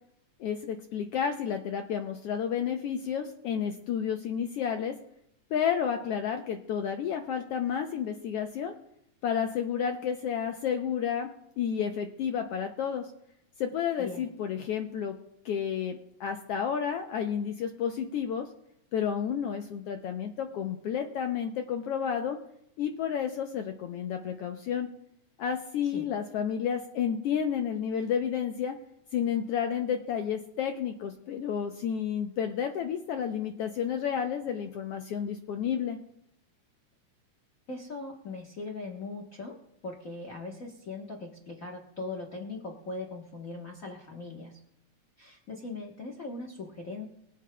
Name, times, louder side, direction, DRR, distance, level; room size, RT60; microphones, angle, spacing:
voice 1, 0.4-5.0 5.5-8.7 9.2-13.1 13.6-15.1 15.4-18.5 18.9-22.4 22.8-24.9 25.4-28.8 29.1-36.0, left 8 dB, 80° left, 5 dB, 1.3 m, -31 dB
voice 2, 37.7-39.6 39.8-44.6 45.2-47.0, left 3 dB, 60° left, -1 dB, 0.8 m, -40 dB
23.5 x 8.5 x 2.2 m, 0.77 s
omnidirectional pair, 3.4 m